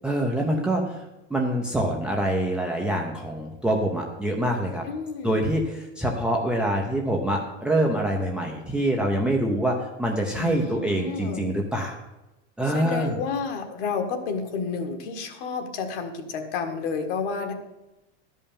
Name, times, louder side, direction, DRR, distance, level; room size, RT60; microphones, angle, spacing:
voice 1, 0.0-1.0 1.3-4.8 5.2-12.0 12.6-13.1, right 1 dB, 5° right, -1 dB, 0.6 m, -25 dB
voice 2, 4.8-5.4 10.3-11.4 12.7-17.5, left 5 dB, 55° left, 5 dB, 1.8 m, -30 dB
12.0 x 5.5 x 8.6 m, 1.0 s
supercardioid pair, 170°, 34 cm